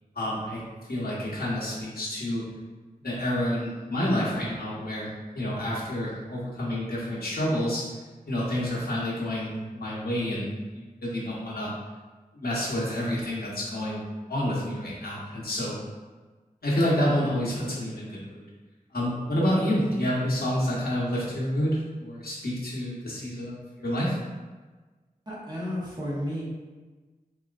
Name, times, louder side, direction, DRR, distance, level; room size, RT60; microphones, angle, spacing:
voice 1, 0.1-0.6 0.9-2.4 3.0-5.1 5.3-7.8 8.3-11.7 12.3-14.0 14.3-15.8 16.6-18.4 18.9-24.2, equal, 80° left, -6 dB, 1.1 m, -28 dB
voice 2, 25.3-26.4, equal, 25° right, -8 dB, 1.3 m, -32 dB
4.0 x 2.8 x 2.4 m, 1.3 s
wide cardioid pair, 65°, 16 cm